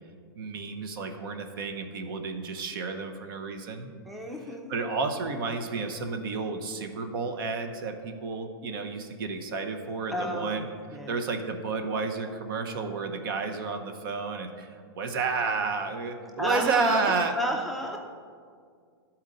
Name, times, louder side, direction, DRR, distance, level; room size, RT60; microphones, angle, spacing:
voice 1, 0.3-3.9 4.7-10.7 11.1-17.3, right 4 dB, 60° right, 6 dB, 0.8 m, -31 dB
voice 2, 4.1-4.7 10.1-10.7 10.9-11.2 16.4-18.0, equal, ahead, 0 dB, 0.4 m, -31 dB
11.0 x 4.3 x 3.8 m, 2.1 s
hypercardioid pair, 145°, 13 cm